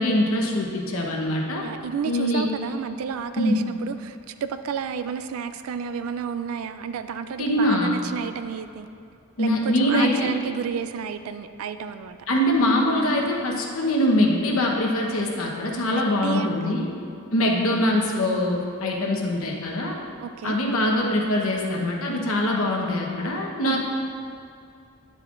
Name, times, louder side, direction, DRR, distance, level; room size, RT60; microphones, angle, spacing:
voice 1, 0.0-1.6 2.0-2.5 3.4-3.6 7.4-7.9 9.4-10.3 12.3-16.9 17.3-20.0 20.4-23.9, left 1 dB, 75° left, 0 dB, 1.0 m, -23 dB
voice 2, 1.6-8.9 9.4-12.2 15.9-16.6 20.2-20.6 23.7-23.9, right 7 dB, 75° right, 10 dB, 0.3 m, -31 dB
9.8 x 7.4 x 2.5 m, 2.5 s
head